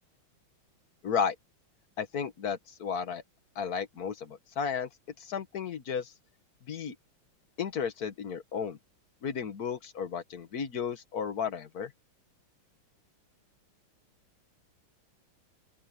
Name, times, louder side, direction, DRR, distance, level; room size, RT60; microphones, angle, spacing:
voice 1, 1.0-1.4 2.0-3.2 3.6-4.9 5.2-6.1 6.7-7.0 7.6-8.8 9.2-11.9, left 6 dB, 50° left, 1.8 m, -33 dB
open air
omnidirectional pair, 2.3 m